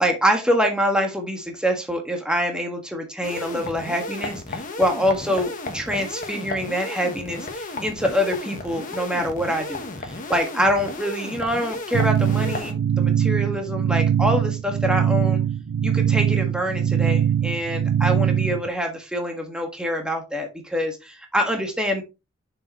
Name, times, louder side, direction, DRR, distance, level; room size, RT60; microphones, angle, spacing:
voice 1, 0.0-15.4 15.8-22.0, equal, 5° right, 3 dB, 1.5 m, -25 dB
sound 1, 3.2-12.7, left 2 dB, 35° left, 1.3 m, -33 dB
sound 2, 11.9-18.7, right 9 dB, 65° right, 0.3 m, -21 dB
6.8 x 5.8 x 3.0 m, 0.26 s
head